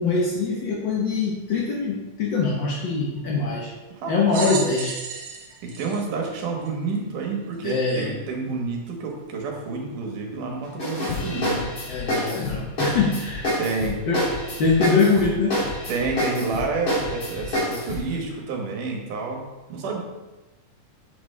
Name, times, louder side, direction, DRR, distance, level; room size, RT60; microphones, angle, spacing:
voice 1, 0.0-3.7 4.1-4.9 7.6-8.1 11.9-13.6 14.1-14.3 14.6-15.6, left 4 dB, 70° left, -3 dB, 1.0 m, -23 dB
voice 2, 4.0-4.5 5.6-11.6 13.6-14.0 15.9-19.4 19.7-20.0, right 4 dB, 85° right, 0 dB, 3.0 m, -29 dB
sound 1, 4.3-7.0 7.7-7.8 8.9-9.0, right 5 dB, 65° right, 2.2 m, -34 dB
sound 2, 10.8-18.1, left 1 dB, 30° left, 2.7 m, -28 dB
7.8 x 7.2 x 3.3 m, 1.1 s
omnidirectional pair, 3.6 m